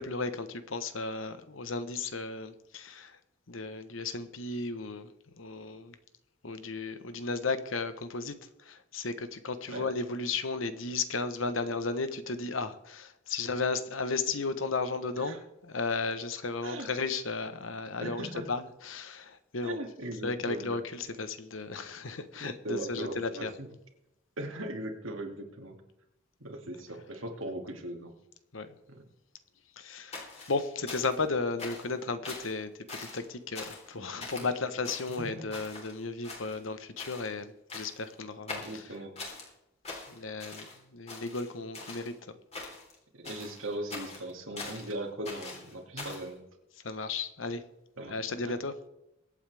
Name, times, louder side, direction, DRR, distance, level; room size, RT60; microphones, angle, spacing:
voice 1, 0.0-3.2 3.5-5.1 5.4-5.9 6.4-19.8 20.2-23.5 28.5-28.8 29.8-38.9 40.1-42.1 46.8-47.6 48.1-48.7, left 3 dB, 85° left, 11 dB, 1.2 m, -34 dB
voice 2, 18.0-18.5 19.6-20.8 22.4-23.7 24.4-25.8 26.4-28.1 28.9-29.0 35.2-35.4 38.6-39.2 43.1-46.4 48.0-48.6, right 1 dB, 90° right, 2 dB, 2.5 m, -39 dB
sound 1, 30.1-31.3 31.6-31.9 32.2-32.5 32.9-33.3 33.6-33.9 34.2-34.5 34.8-35.9 36.2-36.7 37.0-37.3 37.7-38.1 38.5-39.5 39.8-40.8 41.1-42.1 42.5-42.9 43.2-44.9 45.2-46.3, left 3 dB, 35° left, 3.8 m, -43 dB
23.5 x 8.8 x 3.5 m, 0.86 s
head